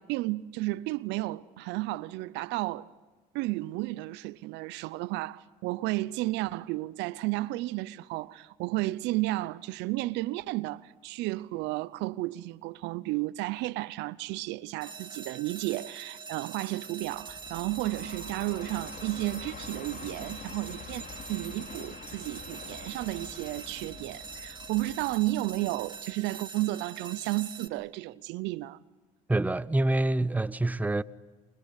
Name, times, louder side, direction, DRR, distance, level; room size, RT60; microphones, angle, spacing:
voice 1, 0.0-2.9 3.3-28.8, right 19 dB, 75° right, 0.7 m, -33 dB
sound 1, 14.8-27.7, right 5 dB, 25° right, 2.3 m, -44 dB
Train, 17.0-26.2, left 6 dB, 50° left, 3.3 m, -46 dB
voice 2, 29.3-31.0, right 2 dB, 10° right, 0.8 m, -26 dB
25.0 x 23.0 x 8.3 m
supercardioid pair, 80°, 18 cm